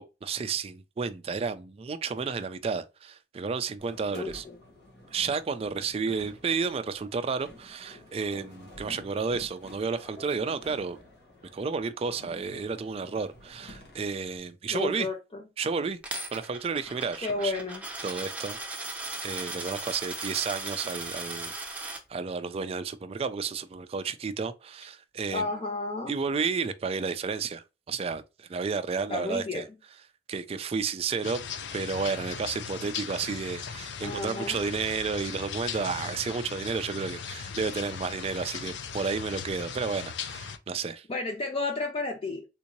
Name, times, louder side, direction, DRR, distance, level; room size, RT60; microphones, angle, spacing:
voice 1, 0.0-4.4 5.1-11.0 11.5-15.1 15.6-16.0 16.3-17.5 18.0-18.6 18.9-21.5 21.8-25.5 26.1-29.6 30.3-31.4 31.7-41.1, right 5 dB, 35° right, 0.3 m, -32 dB
sound 1, 3.8-14.4, left 1 dB, 65° left, 1.2 m, -50 dB
voice 2, 4.1-4.6 14.7-15.4 17.2-17.8 25.3-26.1 29.1-29.6 34.0-34.6 41.1-42.5, left 3 dB, 35° left, 0.5 m, -32 dB
Coin (dropping), 16.0-22.0, right 2 dB, 10° right, 0.7 m, -37 dB
sound 2, 31.2-40.6, left 7 dB, 90° left, 0.5 m, -38 dB
3.6 x 2.6 x 2.9 m
head